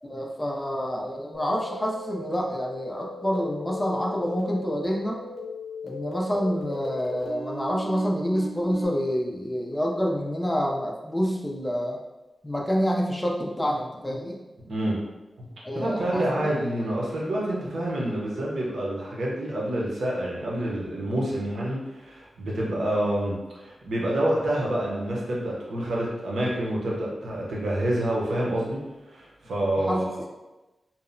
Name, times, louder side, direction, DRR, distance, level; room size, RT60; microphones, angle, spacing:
voice 1, 0.0-5.2 5.8-12.0 12.4-14.4 15.6-16.5 29.8-30.1, equal, 15° left, -1 dB, 0.4 m, -27 dB
sound 1, 1.3-8.9, left 1 dB, 80° left, 0.5 m, -38 dB
voice 2, 14.7-15.0 15.4-15.5 15.7-28.8 29.1-30.2, right 1 dB, 90° right, -5 dB, 0.7 m, -28 dB
2.7 x 2.0 x 2.5 m, 1.1 s
wide cardioid pair, 90°, 0 cm